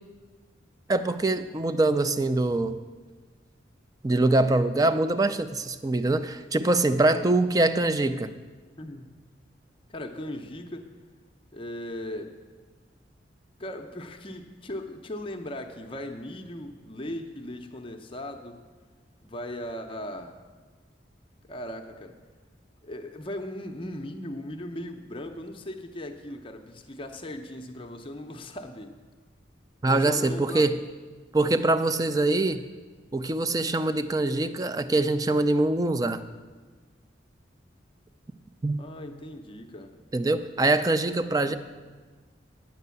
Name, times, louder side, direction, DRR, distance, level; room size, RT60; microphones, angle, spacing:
voice 1, 0.9-2.8 4.0-8.3 29.8-30.8 31.3-32.6 33.1-36.2 38.6-38.8 40.1-41.6, right 2 dB, 20° right, 11 dB, 0.4 m, -24 dB
voice 2, 8.8-9.2 9.9-10.9 11.5-12.4 13.6-18.7 19.2-20.4 21.5-22.2 22.8-28.9 29.8-30.8 38.8-40.0 41.4-41.6, left 1 dB, 30° left, 5 dB, 0.6 m, -38 dB
9.2 x 6.6 x 8.2 m, 1.4 s
head